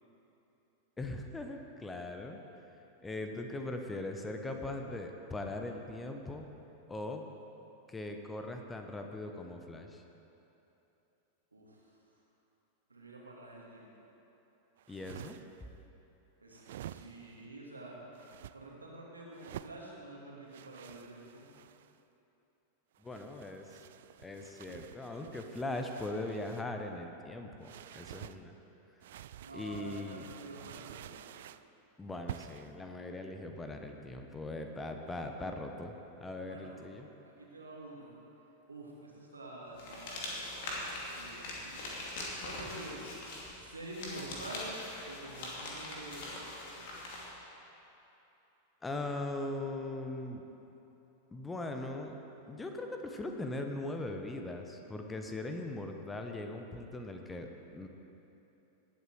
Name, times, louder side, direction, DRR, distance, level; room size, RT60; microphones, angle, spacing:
voice 1, 1.0-2.4 3.0-6.5 6.9-7.2 7.9-10.0 14.9-15.4 23.0-23.7 24.2-28.5 29.5-30.3 32.0-35.9 36.2-37.1 48.8-50.4 51.3-52.2 52.5-57.9, left 2 dB, 10° left, 4 dB, 0.9 m, -40 dB
voice 2, 11.5-12.0 12.9-13.9 16.4-18.0 18.5-21.5 29.4-31.2 36.4-38.1 38.7-40.8 41.1-41.9 42.4-43.1 43.6-44.7 45.1-47.2, right 1 dB, 80° right, -3 dB, 2.4 m, -48 dB
sound 1, 14.8-15.6 16.5-17.4 18.1-18.6 19.3-19.8 20.5-22.0 22.9-26.7 27.6-28.4 29.0-31.7 32.3-32.7, right 12 dB, 55° right, 0.3 m, -49 dB
sound 2, 39.8-47.3, left 2 dB, 50° left, 2.6 m, -42 dB
18.5 x 8.2 x 4.7 m, 3.0 s
figure-of-eight pair, 90°, 0 cm